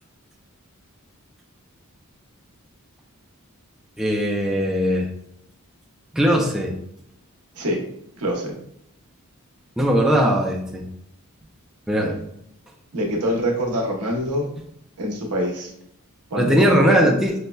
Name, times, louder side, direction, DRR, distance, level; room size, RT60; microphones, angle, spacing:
voice 1, 4.0-5.1 6.1-6.7 9.8-10.8 11.9-12.1 16.4-17.3, equal, 5° right, -2 dB, 0.3 m, -19 dB
voice 2, 8.2-8.6 12.0-12.2 12.9-14.5 15.0-15.7 16.3-17.0, equal, 80° right, 0 dB, 0.8 m, -25 dB
5.3 x 2.1 x 2.2 m, 0.75 s
head